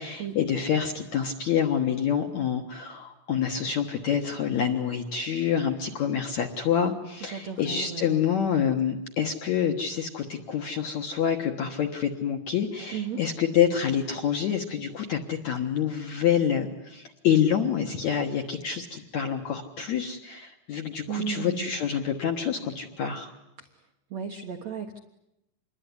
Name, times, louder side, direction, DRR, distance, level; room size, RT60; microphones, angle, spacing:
voice 1, 0.0-23.3, left 8 dB, 60° left, 3 dB, 2.0 m, -27 dB
voice 2, 7.2-8.2 12.9-13.2 21.1-21.7 23.6-23.8 24.1-25.0, right 7 dB, 65° right, 4 dB, 1.7 m, -35 dB
27.0 x 22.0 x 9.9 m, 0.87 s
omnidirectional pair, 5.1 m